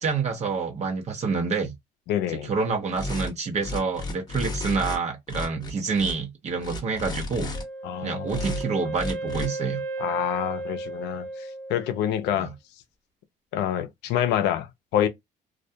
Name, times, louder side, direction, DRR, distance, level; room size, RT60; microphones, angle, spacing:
voice 1, 0.0-1.7 2.3-7.5 8.0-9.8 12.3-12.5, right 4 dB, 40° right, 0.8 m, -27 dB
voice 2, 2.1-2.5 7.8-8.4 10.0-11.3 11.7-12.5 13.5-14.7 14.9-15.1, left 11 dB, 90° left, 0.5 m, -26 dB
sound 1, 2.9-3.3 3.6-5.0 5.3-6.1 6.6-7.6 8.3-8.6 8.9-9.5, left 2 dB, 25° left, 0.9 m, -32 dB
Wind instrument woodwind instrument, 7.5-12.4, right 2 dB, 65° right, 1.0 m, -35 dB
2.3 x 2.2 x 2.6 m
cardioid pair, 110°, 17 cm